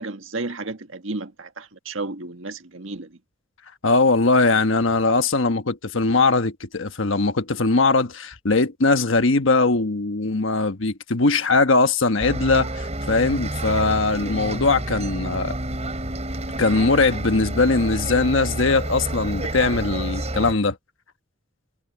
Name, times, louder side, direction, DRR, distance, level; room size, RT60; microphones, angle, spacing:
voice 1, 0.0-3.2, right 3 dB, 70° right, 1.7 m, -32 dB
voice 2, 3.8-15.5 16.6-20.7, left 3 dB, 70° left, 1.3 m, -20 dB
Bus, 12.2-20.5, right 1 dB, 35° right, 5.3 m, -29 dB
head